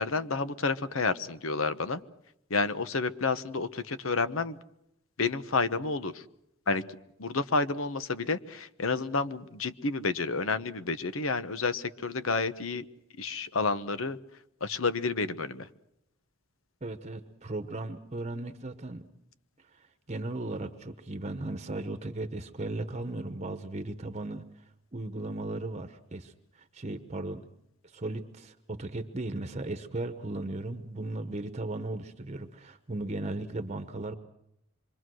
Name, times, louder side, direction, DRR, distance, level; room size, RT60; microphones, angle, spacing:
voice 1, 0.0-2.0 2.5-4.6 5.2-6.2 6.7-6.8 7.2-12.8 13.2-14.2 14.6-15.7, left 4 dB, 90° left, 13 dB, 1.1 m, -30 dB
voice 2, 16.8-19.1 19.7-27.5 27.8-34.2, right 2 dB, 35° right, 9 dB, 1.0 m, -36 dB
26.5 x 23.5 x 6.3 m, 0.79 s
head